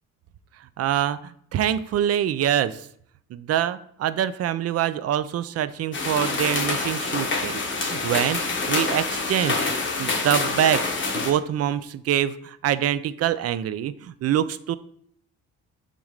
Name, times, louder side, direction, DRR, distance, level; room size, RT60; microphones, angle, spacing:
voice 1, 0.8-1.2 1.5-2.8 3.3-9.7 10.0-14.8, right 10 dB, 55° right, 14 dB, 0.4 m, -25 dB
sound 1, 5.9-11.3, left 3 dB, 40° left, 1.3 m, -26 dB
7.2 x 2.6 x 5.1 m, 0.67 s
cardioid pair, 90°, 30 cm